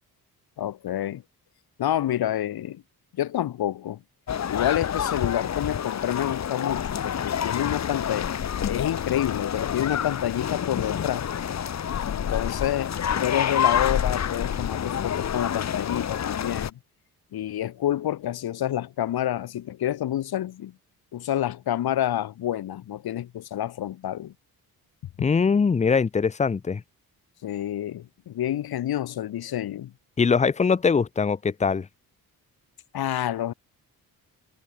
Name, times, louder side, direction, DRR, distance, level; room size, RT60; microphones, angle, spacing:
voice 1, 0.6-1.2 1.8-2.8 3.1-4.0 4.5-11.3 12.1-16.7 17.3-20.7 21.1-24.3 27.4-29.9 32.9-33.5, left 12 dB, 80° left, 3.4 m, -28 dB
sound 1, 4.3-16.7, left 8 dB, 45° left, 2.1 m, -28 dB
voice 2, 25.2-26.8 30.2-31.9, left 5 dB, 20° left, 0.7 m, -22 dB
wide cardioid pair, 170°, 37 cm